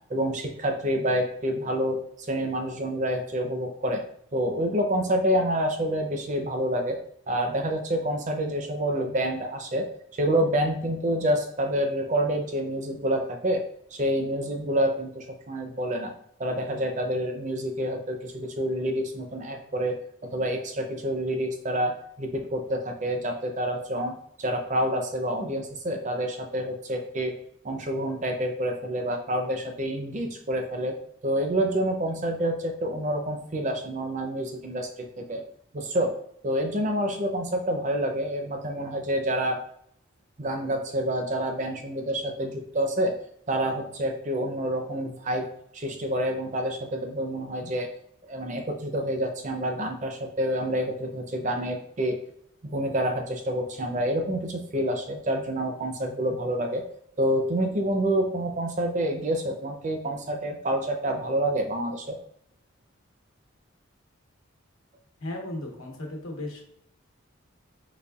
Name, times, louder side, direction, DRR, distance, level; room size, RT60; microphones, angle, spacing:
voice 1, 0.1-2.0 2.3-4.0 4.3-7.0 7.3-9.9 10.2-13.6 13.9-16.1 16.4-20.0 20.2-24.1 24.4-27.3 27.6-30.9 31.2-34.9 35.2-35.4 35.7-36.1 36.4-39.6 40.4-43.2 43.5-45.5 45.7-47.9 48.3-52.2 52.6-56.8 57.2-62.2, right 1 dB, 35° right, 4 dB, 0.5 m, -28 dB
voice 2, 65.2-66.6, left 1 dB, 85° left, 1 dB, 1.1 m, -35 dB
4.1 x 3.4 x 2.3 m, 0.70 s
head